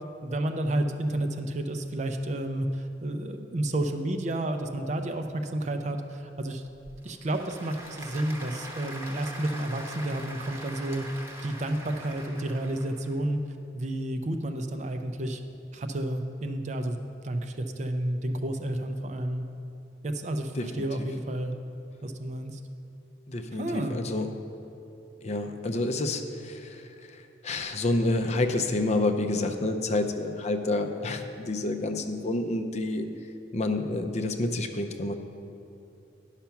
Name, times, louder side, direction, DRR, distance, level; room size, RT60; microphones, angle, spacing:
voice 1, 0.2-6.6 7.0-11.0 11.4-13.4 13.7-15.4 15.7-17.0 17.2-19.4 20.0-21.5 22.0-22.6 23.5-24.0, right 1 dB, 40° right, 6 dB, 0.5 m, -31 dB
Applause / Crowd, 6.7-13.1, equal, 15° right, 0.9 m, -43 dB
voice 2, 20.5-21.1 23.3-24.3 25.2-26.8 27.1-33.1 33.5-35.1, left 2 dB, 35° left, 6 dB, 0.5 m, -29 dB
10.5 x 5.7 x 5.8 m, 2.8 s
head